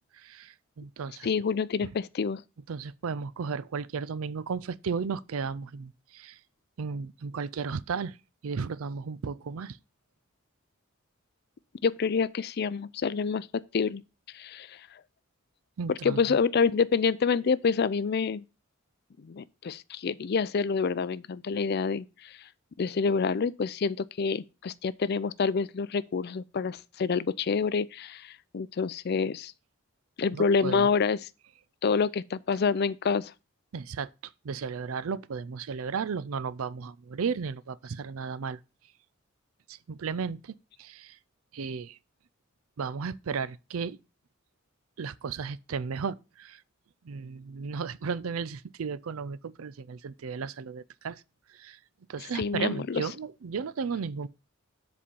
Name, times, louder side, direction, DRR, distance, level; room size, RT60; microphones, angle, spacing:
voice 1, 0.1-1.3 2.7-6.4 6.8-8.2 8.4-9.8 15.8-16.4 30.3-30.9 33.7-34.1 34.4-38.6 39.7-41.2 41.5-42.0 42.8-44.0 45.0-46.6 47.0-51.2 51.5-51.8 52.1-54.3, right 5 dB, 85° right, 0.5 m, -34 dB
voice 2, 1.2-2.4 11.8-14.0 14.3-14.8 16.0-18.4 19.2-22.4 22.8-29.5 30.2-31.2 31.8-33.3 52.3-53.0, left 5 dB, 50° left, 0.4 m, -27 dB
7.6 x 4.2 x 6.9 m
head